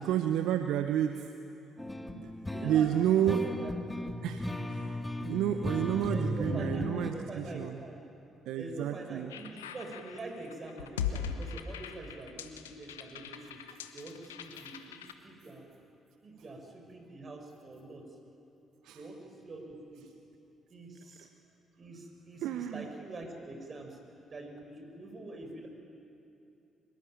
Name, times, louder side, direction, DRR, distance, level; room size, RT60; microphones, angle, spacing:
voice 1, 0.0-1.3 2.1-2.3 2.6-3.5 4.2-7.8 8.5-9.3 18.8-19.0 22.4-22.9, right 10 dB, 65° right, 8 dB, 0.9 m, -30 dB
sound 1, 1.8-7.1, left 1 dB, 15° left, 2.5 m, -36 dB
voice 2, 2.4-3.7 6.1-8.0 8.6-13.6 13.9-15.6 16.2-18.1 18.9-20.0 20.7-21.3 21.8-24.0 24.3-25.7, right 2 dB, 40° right, 3 dB, 6.4 m, -45 dB
sound 2, 9.3-15.1, left 7 dB, 85° left, 0.9 m, -40 dB
24.5 x 22.5 x 9.3 m, 2.8 s
figure-of-eight pair, 45°, 0 cm